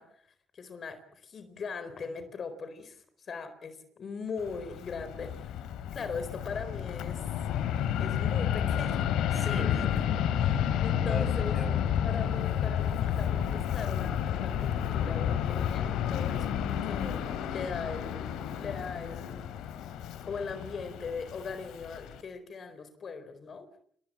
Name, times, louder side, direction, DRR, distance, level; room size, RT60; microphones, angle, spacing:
voice 1, 0.0-7.2 8.0-9.0 9.3-9.4 10.8-19.4 20.2-23.7, left 5 dB, 50° left, 10 dB, 4.2 m, -40 dB
Fixed-wing aircraft airplane, 4.4-22.2, left 9 dB, 90° left, 3.2 m, -31 dB
voice 2, 9.3-10.7 11.0-11.8, left 1 dB, 10° left, 9 dB, 5.1 m, -39 dB
28.5 x 19.5 x 8.7 m, 0.65 s
cardioid pair, 90°, 0 cm